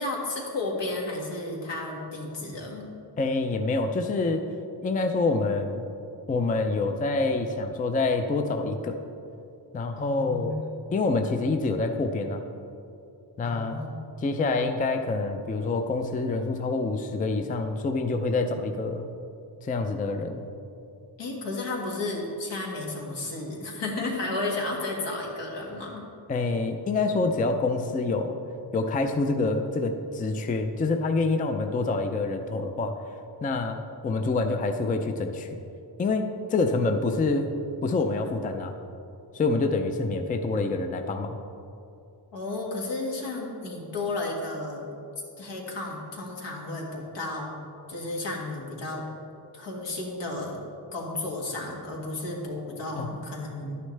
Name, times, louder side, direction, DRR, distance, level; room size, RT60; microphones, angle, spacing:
voice 1, 0.0-2.9 9.9-10.5 13.4-14.2 21.2-26.0 42.3-44.9 45.4-47.5 47.9-49.1 49.5-50.6 50.9-53.8, left 2 dB, 80° left, -1 dB, 1.9 m, -33 dB
voice 2, 3.2-4.4 4.8-5.8 6.3-9.0 9.7-10.6 10.9-12.4 13.4-13.8 14.2-19.1 19.6-20.4 26.3-28.4 28.7-33.0 33.4-35.5 36.0-37.5 37.8-38.7 39.3-41.4 53.0-53.1, left 3 dB, 20° left, 6 dB, 0.4 m, -26 dB
11.5 x 9.7 x 3.3 m, 2.6 s
wide cardioid pair, 170°, 42 cm